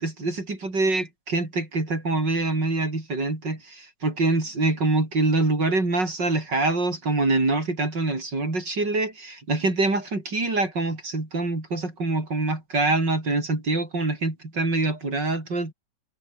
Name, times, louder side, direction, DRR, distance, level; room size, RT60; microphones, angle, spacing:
voice 1, 0.0-15.7, right 2 dB, 75° right, 6.6 m, -25 dB
omnidirectional pair, 1.9 m